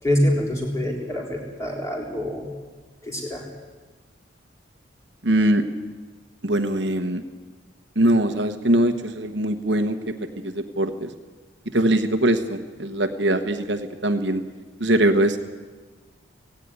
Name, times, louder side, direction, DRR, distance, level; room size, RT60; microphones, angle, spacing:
voice 1, 0.0-2.5 3.0-3.5, left 1 dB, 15° left, -1 dB, 4.0 m, -25 dB
voice 2, 5.2-5.6 6.4-7.2 8.0-11.1 11.7-14.4 14.8-15.5, right 1 dB, 60° right, 7 dB, 1.2 m, -22 dB
17.0 x 16.5 x 9.8 m, 1.3 s
head